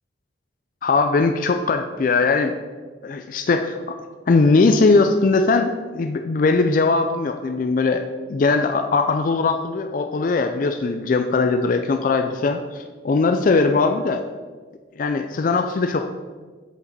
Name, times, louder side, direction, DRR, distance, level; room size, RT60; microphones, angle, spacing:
voice 1, 0.8-2.5 3.0-3.8 4.3-8.0 8.3-14.2 15.0-16.0, left 3 dB, 45° left, 6 dB, 0.3 m, -20 dB
7.8 x 5.1 x 4.0 m, 1.4 s
head